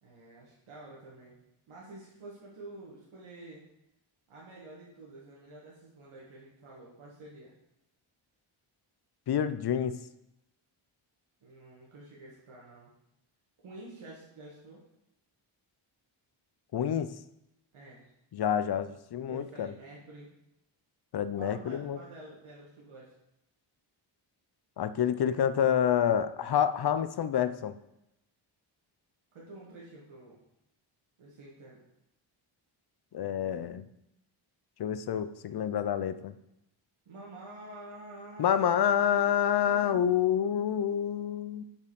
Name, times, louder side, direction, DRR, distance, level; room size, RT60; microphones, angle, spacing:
voice 1, 0.0-1.4 1.7-3.6 4.3-7.5 11.4-12.9 13.6-14.8 17.7-18.1 19.3-20.3 21.3-23.2 29.3-30.4 31.2-31.8 37.1-39.3 39.6-40.0 40.4-40.7, right 2 dB, 75° right, -5 dB, 1.8 m, -49 dB
voice 2, 9.3-10.0 16.7-17.2 18.3-19.7 21.1-22.0 24.8-27.8 33.1-33.8 34.8-36.3 38.4-41.6, left 9 dB, 50° left, 13 dB, 0.6 m, -28 dB
5.3 x 5.2 x 6.3 m, 0.84 s
cardioid pair, 70°, 50 cm